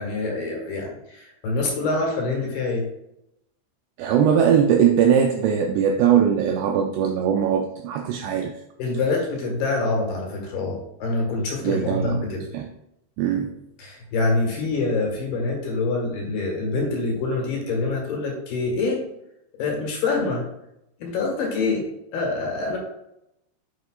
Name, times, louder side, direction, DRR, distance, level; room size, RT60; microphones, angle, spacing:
voice 1, 0.0-2.9 8.8-12.5 13.8-19.0 19.6-20.4 21.0-22.8, left 3 dB, 65° left, -1 dB, 3.2 m, -25 dB
voice 2, 4.0-8.5 11.6-12.3 12.5-12.7 13.2-13.5, right 8 dB, 85° right, 3 dB, 2.5 m, -20 dB
10.0 x 6.8 x 2.4 m, 0.82 s
omnidirectional pair, 5.4 m